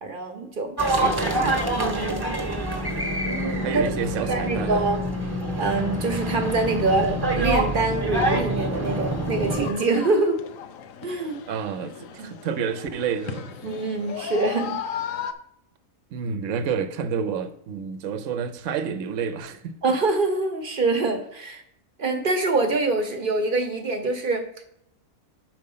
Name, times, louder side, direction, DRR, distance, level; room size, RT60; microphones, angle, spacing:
voice 1, 0.0-2.4 3.7-3.8 4.3-5.0 5.6-10.4 11.0-11.4 12.2-12.3 13.6-14.8 19.8-21.6 22.0-24.6, right 3 dB, 45° right, 1.0 m, -25 dB
sound 1, 0.8-9.7, right 1 dB, 20° right, 1.0 m, -26 dB
voice 2, 0.9-1.6 3.6-4.9 11.5-13.5 16.1-19.8, right 6 dB, 70° right, 1.0 m, -29 dB
sound 2, 9.1-15.3, left 8 dB, 75° left, 1.0 m, -36 dB
6.5 x 4.9 x 5.5 m
omnidirectional pair, 1.4 m